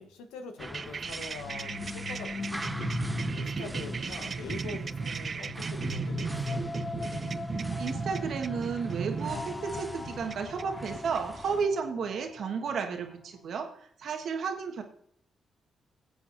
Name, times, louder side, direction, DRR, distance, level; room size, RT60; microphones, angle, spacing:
voice 1, 0.0-2.8 3.3-6.6, left 4 dB, 85° left, 6 dB, 1.0 m, -44 dB
sound 1, 0.6-11.7, right 1 dB, 15° right, 0.6 m, -45 dB
sound 2, 0.6-11.2, right 5 dB, 50° right, 0.4 m, -36 dB
sound 3, 1.2-13.0, left 4 dB, 55° left, 0.9 m, -40 dB
voice 2, 7.8-13.7 14.0-14.8, right 5 dB, 70° right, 4 dB, 1.4 m, -32 dB
19.5 x 8.0 x 2.6 m, 0.66 s
hypercardioid pair, 45°, 0 cm